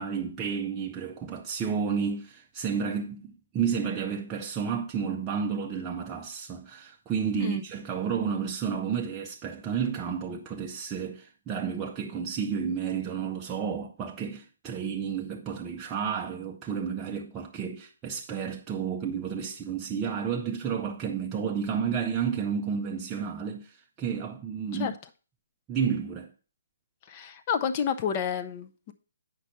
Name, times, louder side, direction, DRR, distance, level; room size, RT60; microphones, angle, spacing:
voice 1, 0.0-25.0 25.7-26.3, right 7 dB, 15° right, 0.5 m, -31 dB
voice 2, 27.1-28.9, left 7 dB, 30° left, 0.6 m, -30 dB
8.2 x 5.3 x 4.2 m
figure-of-eight pair, 135°, 0 cm